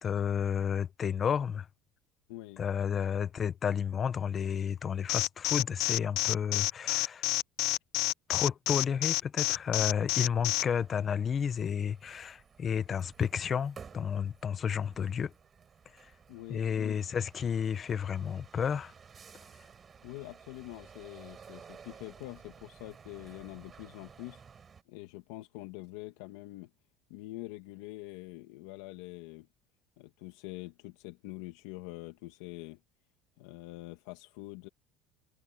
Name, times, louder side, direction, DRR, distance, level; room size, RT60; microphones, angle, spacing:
voice 1, 0.0-1.7 2.6-7.3 8.3-15.3 16.5-18.9, left 7 dB, 25° left, 0.7 m, -31 dB
voice 2, 2.3-2.6 16.3-17.0 20.0-24.4 24.9-26.7 27.1-29.5 30.0-32.8 33.4-34.7, left 19 dB, 80° left, 1.9 m, -45 dB
Alarm, 5.1-10.6, left 20 dB, 60° left, 0.4 m, -28 dB
sound 1, 10.4-24.8, right 6 dB, 20° right, 6.3 m, -55 dB
cardioid pair, 155°, 0 cm